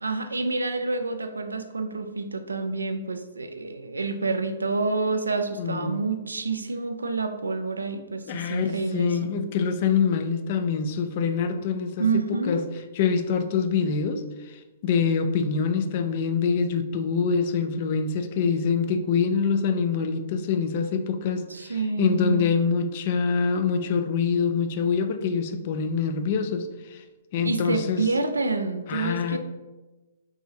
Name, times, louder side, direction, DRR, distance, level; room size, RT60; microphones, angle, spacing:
voice 1, 0.0-9.3 12.0-12.7 21.5-22.5 27.4-29.4, right 3 dB, 90° right, 7 dB, 0.4 m, -28 dB
voice 2, 5.6-6.0 8.3-12.6 12.9-27.0 27.3-28.0 28.9-29.4, left 6 dB, 45° left, 8 dB, 0.4 m, -25 dB
4.7 x 2.6 x 2.7 m, 1.2 s
hypercardioid pair, 125°, 0 cm